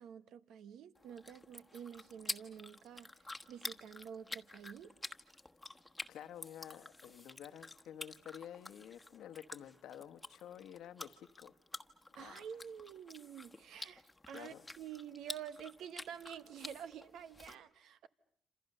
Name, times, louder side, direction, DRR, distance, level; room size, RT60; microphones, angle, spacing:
voice 1, 0.0-3.1 3.5-4.9 12.1-18.1, right 9 dB, 75° right, 1.1 m, -49 dB
sound 1, 0.9-17.5, left 2 dB, 10° left, 1.3 m, -49 dB
voice 2, 6.1-11.5 12.1-12.4 14.3-14.7, left 10 dB, 80° left, 1.2 m, -51 dB
27.5 x 27.0 x 6.6 m
cardioid pair, 90°, 0 cm